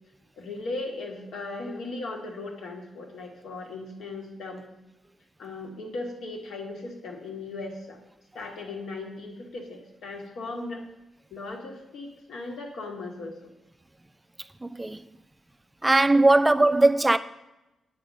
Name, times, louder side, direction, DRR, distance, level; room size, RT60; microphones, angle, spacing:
voice 1, 0.4-4.6 5.4-8.0 8.3-10.8 11.3-13.5, left 2 dB, 80° left, 1.7 m, -37 dB
voice 2, 14.6-15.0 15.8-17.2, right 2 dB, 10° right, 0.3 m, -19 dB
9.0 x 6.8 x 5.3 m
wide cardioid pair, 160°, 0 cm